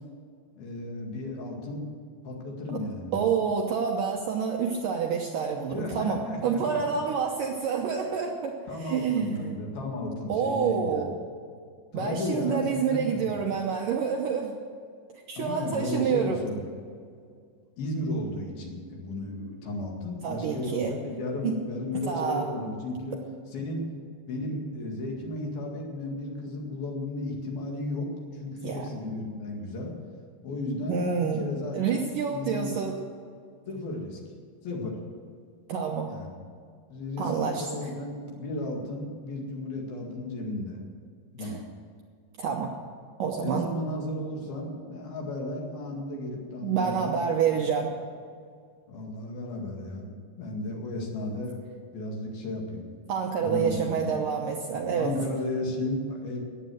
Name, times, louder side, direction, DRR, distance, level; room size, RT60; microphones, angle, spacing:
voice 1, 0.6-1.9 2.2-3.3 5.7-6.8 8.7-11.1 11.9-13.3 15.4-16.6 17.8-23.2 23.5-23.9 24.3-29.9 30.4-32.1 32.3-32.8 33.7-34.3 34.6-35.0 36.1-36.4 36.9-40.8 41.3-41.6 43.4-47.2 48.9-52.8 53.4-54.2 55.0-56.4, left 2 dB, 65° left, 0 dB, 3.9 m, -34 dB
voice 2, 3.1-9.5 10.3-11.2 11.9-14.5 15.3-16.4 20.2-20.9 21.4-21.5 22.1-22.5 28.6-28.8 30.9-31.4 31.7-33.0 35.7-36.1 37.2-37.9 41.4-41.6 42.4-42.7 43.2-43.7 46.6-47.9 53.1-55.1, right 6 dB, 70° right, 1 dB, 2.1 m, -28 dB
15.0 x 10.0 x 7.8 m, 2.2 s
omnidirectional pair, 4.9 m